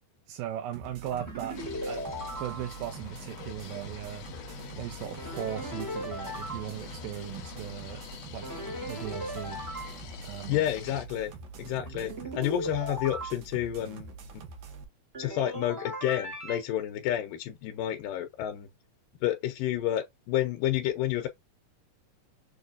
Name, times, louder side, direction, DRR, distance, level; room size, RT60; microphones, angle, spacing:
voice 1, 0.3-1.6 1.8-4.3 4.8-8.0 8.3-8.5 8.8-9.6 10.2-10.7, right 12 dB, 85° right, 2.3 m, -38 dB
sound 1, 0.7-14.9, right 4 dB, 70° right, 2.2 m, -45 dB
sound 2, 1.0-3.0 5.2-6.7 8.4-10.0 11.9-13.3 15.1-16.6, equal, 35° right, 0.8 m, -38 dB
sound 3, 1.5-11.1, left 8 dB, 65° left, 1.8 m, -45 dB
voice 2, 10.5-11.3 11.6-14.4 15.2-18.7 19.2-21.3, left 12 dB, 85° left, 2.4 m, -30 dB
6.5 x 2.4 x 2.5 m
omnidirectional pair, 3.9 m